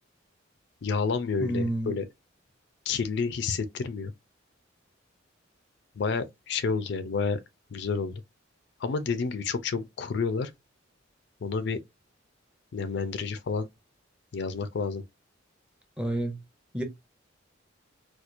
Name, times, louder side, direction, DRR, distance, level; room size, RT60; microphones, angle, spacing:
voice 1, 0.8-2.0 2.9-4.1 6.0-7.4 7.7-8.2 8.8-10.5 11.4-11.8 12.7-13.7 14.3-15.0, left 5 dB, 60° left, 0.4 m, -29 dB
voice 2, 1.4-2.0 16.0-16.4 16.7-16.8, right 1 dB, 5° right, 0.6 m, -29 dB
4.3 x 2.3 x 2.4 m
head